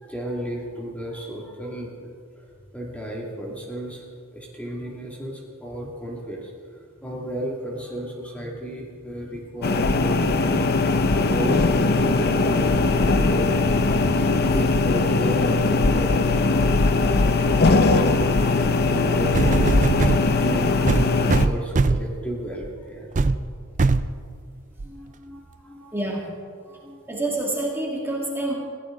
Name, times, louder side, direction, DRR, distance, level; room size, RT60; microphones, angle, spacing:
voice 1, 0.0-2.5 2.7-4.0 4.3-6.5 7.0-17.8 18.8-23.1 24.8-26.2 26.7-27.0, right 1 dB, 5° left, -2 dB, 2.2 m, -34 dB
Server or computer room ambience, 9.6-21.5, left 3 dB, 45° left, 0.7 m, -20 dB
sound 1, 19.3-20.2 20.9-22.1 22.6-22.8 23.2-23.4 23.8-24.1 24.8-24.9, right 3 dB, 35° right, 0.5 m, -20 dB
voice 2, 25.9-26.3 27.1-28.5, right 2 dB, 10° right, -2 dB, 2.2 m, -27 dB
21.0 x 15.5 x 3.8 m, 2.1 s
head